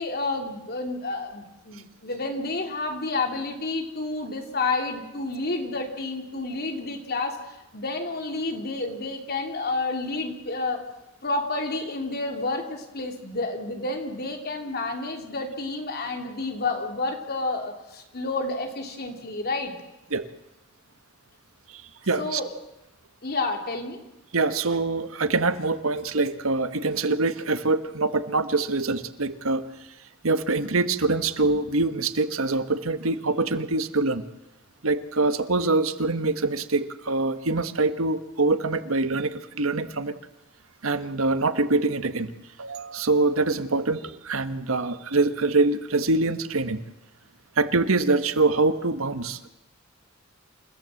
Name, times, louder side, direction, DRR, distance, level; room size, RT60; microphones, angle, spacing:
voice 1, 0.0-10.8 11.2-19.7 22.2-22.5 23.2-24.0, left 3 dB, 50° left, 4 dB, 3.2 m, -30 dB
voice 2, 21.7-22.4 24.3-29.6 30.2-34.2 34.8-40.1 40.8-42.3 42.6-46.8 47.6-49.5, right 3 dB, 90° right, 11 dB, 1.3 m, -24 dB
28.0 x 15.5 x 7.7 m, 0.97 s
head